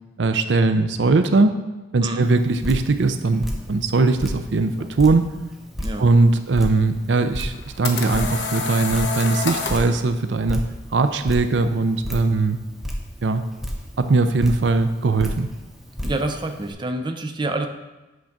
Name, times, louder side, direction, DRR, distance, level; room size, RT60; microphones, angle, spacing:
voice 1, 0.2-1.6 1.9-5.3 6.0-10.6 10.9-12.6 13.2-13.4 14.0-15.5, right 3 dB, 85° right, 9 dB, 0.5 m, -20 dB
Drip, 2.2-16.7, equal, ahead, 0.8 m, -34 dB
sound 1, 7.4-9.9, left 4 dB, 75° left, 1.0 m, -28 dB
voice 2, 16.0-17.7, right 2 dB, 25° right, 5 dB, 0.6 m, -27 dB
8.6 x 3.8 x 5.9 m, 1.1 s
head